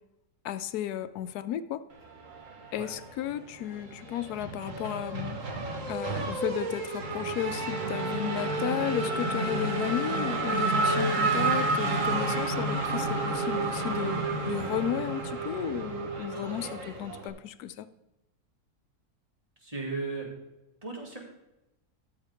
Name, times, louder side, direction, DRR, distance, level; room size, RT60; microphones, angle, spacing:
voice 1, 0.4-1.8 2.7-5.4 5.9-17.9, left 11 dB, 80° left, 12 dB, 1.1 m, -34 dB
Race car auto racing / Accelerating revving vroom, 2.3-3.3 3.6-17.3, right 3 dB, 55° right, 1.6 m, -30 dB
voice 2, 19.6-20.3 20.8-21.2, right 3 dB, 20° right, -2 dB, 2.5 m, -35 dB
13.5 x 7.3 x 3.5 m, 0.93 s
omnidirectional pair, 1.7 m